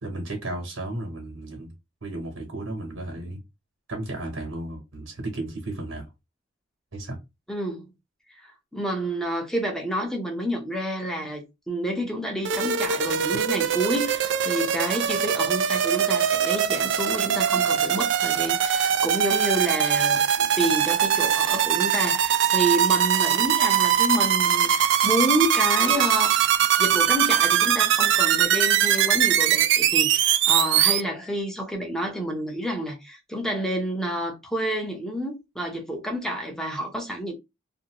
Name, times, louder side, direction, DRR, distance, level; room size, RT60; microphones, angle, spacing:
voice 1, 0.0-1.7 2.0-3.4 3.9-6.1 6.9-7.2, right 2 dB, 80° right, 1.2 m, -34 dB
voice 2, 7.5-7.9 8.3-37.3, right 1 dB, 5° left, 0.7 m, -29 dB
sound 1, 12.5-31.0, right 9 dB, 60° right, 0.3 m, -22 dB
2.7 x 2.6 x 2.9 m
head